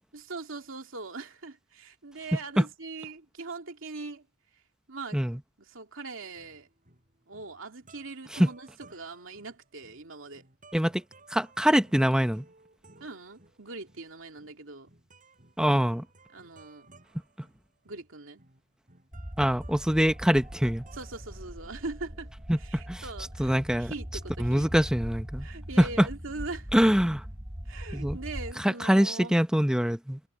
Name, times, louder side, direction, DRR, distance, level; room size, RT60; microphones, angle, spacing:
voice 1, 0.1-4.3 4.5-4.6 4.9-5.2 5.6-6.7 7.3-10.5 13.0-14.9 16.3-16.9 17.8-18.4 20.9-22.3 22.6-24.7 25.4-26.7 27.6-29.3, right 3 dB, 75° right, 2.5 m, -41 dB
sound 1, 6.2-21.8, right 3 dB, 40° right, 7.9 m, -58 dB
voice 2, 10.7-11.0 11.3-12.4 15.6-16.0 19.4-20.8 22.5-23.0 23.4-23.9 24.4-25.5 25.8-26.1 26.7-27.2 27.9-28.2 28.6-30.2, equal, 5° right, 0.8 m, -24 dB
sound 2, 19.1-28.5, equal, 20° right, 1.7 m, -40 dB
head